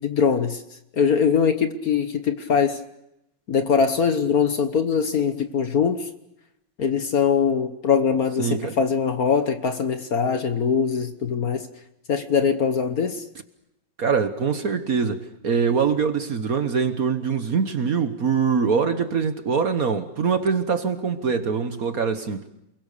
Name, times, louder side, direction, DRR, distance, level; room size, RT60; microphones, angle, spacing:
voice 1, 0.0-0.6 1.0-2.8 3.5-6.1 6.8-11.7 12.1-13.2, left 6 dB, 50° left, 1.5 m, -22 dB
voice 2, 8.4-8.7 14.0-22.5, right 5 dB, 50° right, 1.4 m, -23 dB
28.5 x 22.5 x 6.8 m
omnidirectional pair, 2.2 m